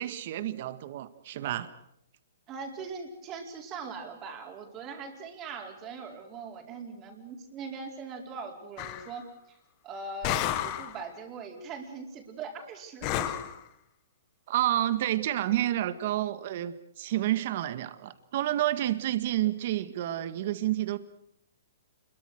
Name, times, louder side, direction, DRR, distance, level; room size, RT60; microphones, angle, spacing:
voice 1, 0.0-1.7 14.5-21.0, right 13 dB, 50° right, 12 dB, 1.7 m, -29 dB
voice 2, 2.5-9.6 9.8-13.4, right 4 dB, 25° right, 3 dB, 4.5 m, -41 dB
sound 1, 8.8-9.1 10.2-11.0 13.0-13.6, left 12 dB, 30° left, 1.6 m, -31 dB
27.5 x 22.5 x 6.5 m, 0.76 s
hypercardioid pair, 155°, 0 cm